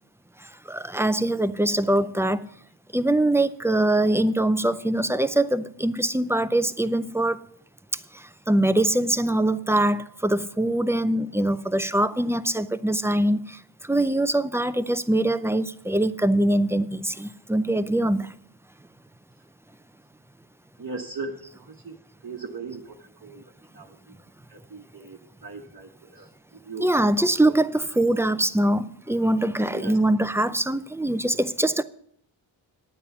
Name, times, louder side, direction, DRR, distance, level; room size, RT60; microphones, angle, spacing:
voice 1, 0.7-2.5 2.9-7.4 8.5-13.6 13.9-18.3 26.8-31.8, right 1 dB, 5° right, 0.4 m, -23 dB
voice 2, 20.8-22.0 22.2-24.2 24.5-27.5 29.7-30.0, right 4 dB, 45° right, 1.1 m, -39 dB
10.0 x 9.4 x 5.5 m
wide cardioid pair, 80°, 48 cm